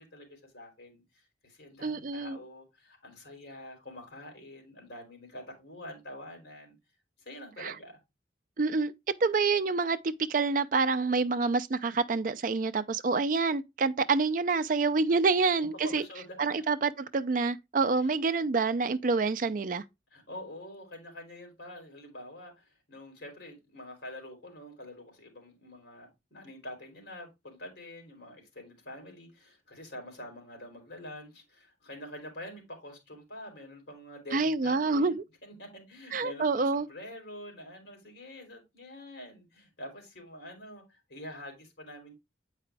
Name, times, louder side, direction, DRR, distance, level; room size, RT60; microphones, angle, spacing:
voice 1, 0.0-6.8 7.2-8.0 15.8-16.6 18.0-18.1 20.1-35.1 35.4-42.1, left 1 dB, 70° left, 3.4 m, -46 dB
voice 2, 1.8-2.4 7.6-7.7 8.6-8.9 9.2-16.1 16.4-19.8 34.3-35.2 36.1-36.9, right 4 dB, 45° right, 0.4 m, -27 dB
8.6 x 4.9 x 3.4 m
head